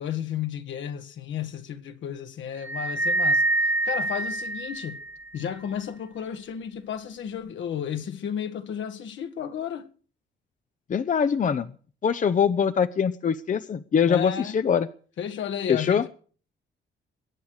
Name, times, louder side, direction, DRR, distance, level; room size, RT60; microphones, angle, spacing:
voice 1, 0.0-5.0 5.3-9.9 14.1-14.6 15.2-16.1, left 9 dB, 70° left, 1.8 m, -33 dB
sound 1, 2.6-5.3, right 2 dB, 10° right, 1.0 m, -26 dB
voice 2, 10.9-11.7 12.0-14.9 15.7-16.0, left 7 dB, 40° left, 0.8 m, -23 dB
22.0 x 9.4 x 6.5 m
cardioid pair, 90°, 20 cm